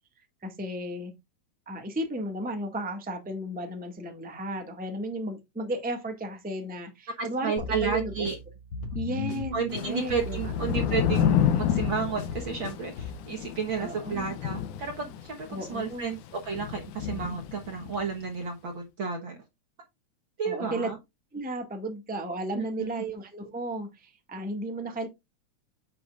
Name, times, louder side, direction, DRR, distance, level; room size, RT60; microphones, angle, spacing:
voice 1, 0.4-1.1 1.6-8.3 8.9-10.5 13.8-14.2 15.5-16.1 20.4-20.9 21.3-25.1, right 1 dB, 5° right, 4 dB, 1.3 m, -34 dB
voice 2, 7.2-8.4 9.5-19.4 20.4-21.0 22.5-22.9, right 5 dB, 50° right, 3 dB, 1.8 m, -32 dB
sound 1, 7.6-13.2, left 3 dB, 55° left, 2.6 m, -37 dB
Thunder / Rain, 9.7-18.1, left 9 dB, 85° left, 2.3 m, -30 dB
9.3 x 7.8 x 2.5 m, 0.21 s
omnidirectional pair, 3.4 m